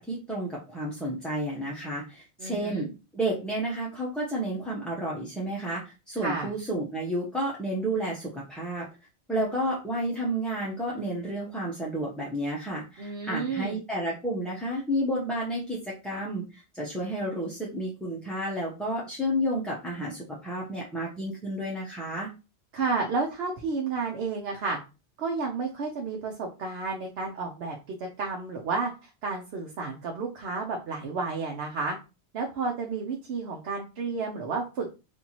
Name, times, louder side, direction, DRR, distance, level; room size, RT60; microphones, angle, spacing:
voice 1, 0.0-2.9 3.1-8.9 9.3-22.3, right 1 dB, ahead, -5 dB, 0.5 m, -31 dB
voice 2, 2.4-2.9 6.2-6.5 13.0-13.8 22.7-24.8 25.2-32.0 32.3-34.9, right 4 dB, 70° right, 1 dB, 0.9 m, -31 dB
4.3 x 2.6 x 2.8 m, 0.30 s
omnidirectional pair, 1.1 m